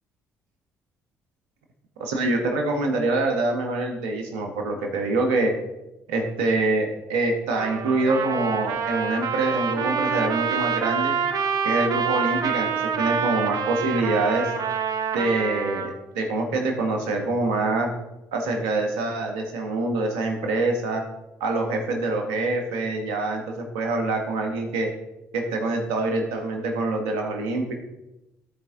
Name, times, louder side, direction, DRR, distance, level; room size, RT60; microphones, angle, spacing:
voice 1, 2.0-5.5 6.1-11.2 11.6-14.5 15.1-17.9 18.3-21.0 21.4-24.9 25.3-27.7, right 2 dB, 75° right, 3 dB, 1.3 m, -25 dB
Trumpet, 7.5-15.9, right 6 dB, 55° right, 0.9 m, -26 dB
12.0 x 4.5 x 3.8 m, 0.96 s
hypercardioid pair, 50°, 8 cm